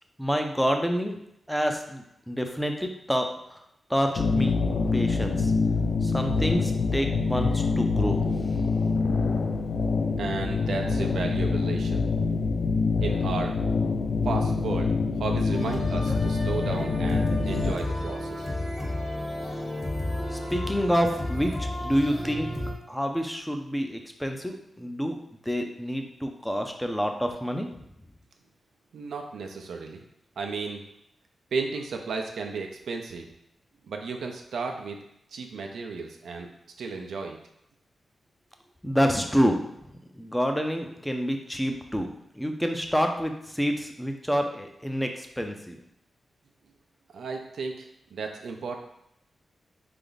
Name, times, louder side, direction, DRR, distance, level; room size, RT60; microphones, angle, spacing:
voice 1, 0.2-1.2 1.5-3.6 3.9-5.5 6.0-8.3 20.3-22.5 22.9-27.8 38.8-39.6 40.1-42.1 42.3-45.8, equal, 5° left, 4 dB, 0.5 m, -28 dB
sound 1, 4.2-17.7, left 4 dB, 65° left, 0.3 m, -25 dB
voice 2, 10.2-12.1 13.0-13.5 14.2-18.5 28.9-30.0 30.4-30.8 31.5-33.2 33.8-35.0 35.3-36.5 36.8-37.4 47.1-48.8, right 4 dB, 85° right, 3 dB, 0.5 m, -34 dB
sound 2, 15.5-22.7, left 1 dB, 30° left, 1.1 m, -32 dB
4.0 x 3.4 x 3.9 m, 0.79 s
wide cardioid pair, 135°, 0 cm